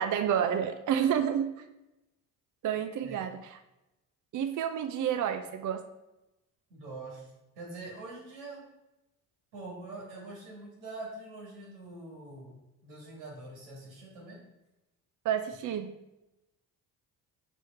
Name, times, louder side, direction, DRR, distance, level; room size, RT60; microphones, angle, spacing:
voice 1, 0.0-1.5 2.6-3.6 4.3-5.8 15.2-15.9, right 9 dB, 40° right, 8 dB, 0.6 m, -29 dB
voice 2, 6.7-7.3 7.6-8.6 9.5-14.4, right 2 dB, 85° right, -3 dB, 2.3 m, -44 dB
4.9 x 4.0 x 5.4 m, 0.95 s
hypercardioid pair, 55°, 48 cm